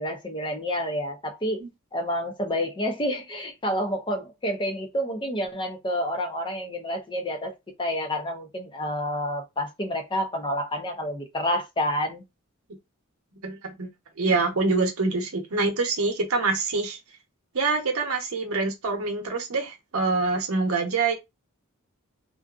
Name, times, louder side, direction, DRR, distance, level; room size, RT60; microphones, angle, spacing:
voice 1, 0.0-1.6 1.9-7.5 7.8-12.2, equal, 25° left, 0.6 m, -29 dB
voice 2, 13.4-13.9 14.2-17.0 17.5-21.1, right 3 dB, 85° right, 0.8 m, -25 dB
2.5 x 2.3 x 2.3 m
head